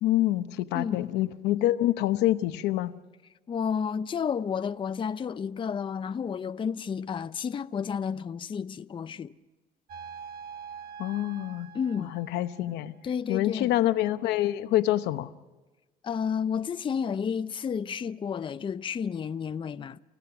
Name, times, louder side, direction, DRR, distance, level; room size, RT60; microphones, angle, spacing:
voice 1, 0.0-2.9 11.0-11.7 12.0-12.9 13.3-15.3, left 14 dB, 90° left, 0.9 m, -26 dB
voice 2, 0.7-1.1 3.5-9.3 11.7-12.2 13.0-13.7 16.0-20.0, left 7 dB, 30° left, 0.6 m, -31 dB
sound 1, 9.9-13.1, right 7 dB, 60° right, 1.6 m, -45 dB
29.5 x 15.5 x 5.9 m
cardioid pair, 110°, 17 cm